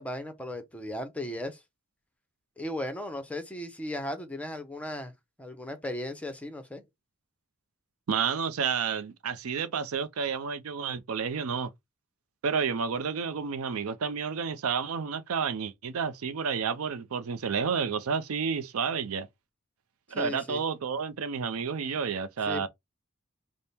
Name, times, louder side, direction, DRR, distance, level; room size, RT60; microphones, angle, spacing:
voice 1, 0.0-1.6 2.6-5.1 5.4-6.8 20.2-20.6 22.5-22.7, left 1 dB, 5° left, 0.7 m, -36 dB
voice 2, 8.1-11.7 12.4-19.3 20.1-22.7, right 6 dB, 85° right, 0.5 m, -30 dB
3.4 x 2.1 x 4.2 m
head